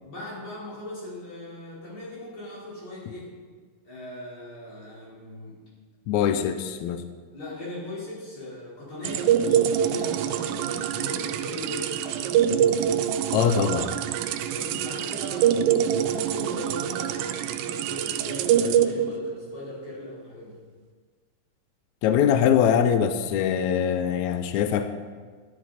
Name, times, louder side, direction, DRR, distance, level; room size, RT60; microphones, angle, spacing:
voice 1, 0.0-3.3 3.9-5.6 7.3-12.7 14.4-20.6, left 1 dB, 50° left, -8 dB, 5.5 m, -39 dB
voice 2, 6.1-7.0 13.3-13.9 22.0-24.9, left 8 dB, 85° left, 9 dB, 1.7 m, -22 dB
sound 1, 9.0-19.6, right 9 dB, 80° right, 2.2 m, -25 dB
12.0 x 12.0 x 4.2 m, 1.5 s
omnidirectional pair, 4.0 m